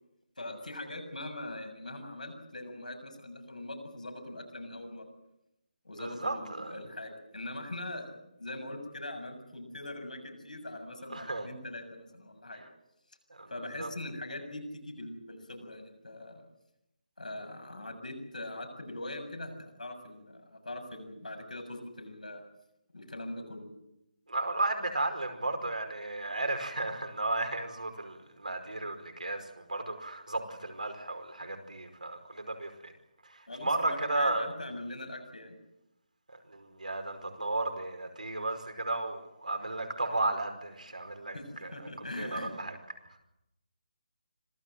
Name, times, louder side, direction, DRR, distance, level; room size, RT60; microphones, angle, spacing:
voice 1, 0.4-5.1 5.8-12.6 13.5-16.4 17.2-22.4 22.9-23.7 33.5-35.6 41.3-42.5, left 1 dB, 70° left, 5 dB, 7.0 m, -42 dB
voice 2, 6.0-6.8 11.1-11.5 13.3-13.5 13.8-13.9 24.3-32.9 33.3-34.5 36.5-41.4 41.6-41.9 42.2-42.8, right 2 dB, 70° right, 5 dB, 5.2 m, -34 dB
26.5 x 17.5 x 7.8 m, 0.87 s
figure-of-eight pair, 150°, 4 cm